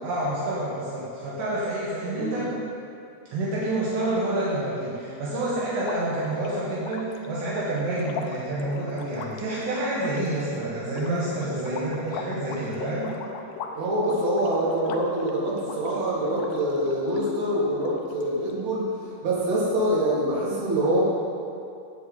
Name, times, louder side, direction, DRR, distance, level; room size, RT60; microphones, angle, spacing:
voice 1, 0.0-2.5 3.3-13.2, right 1 dB, 70° right, -7 dB, 3.8 m, -28 dB
sound 1, 5.7-17.3 17.7-18.5, left 5 dB, 80° left, 2.1 m, -39 dB
voice 2, 13.8-18.9 19.2-21.0, right 1 dB, 45° right, -8 dB, 4.3 m, -25 dB
18.0 x 8.2 x 4.3 m, 2.5 s
omnidirectional pair, 5.2 m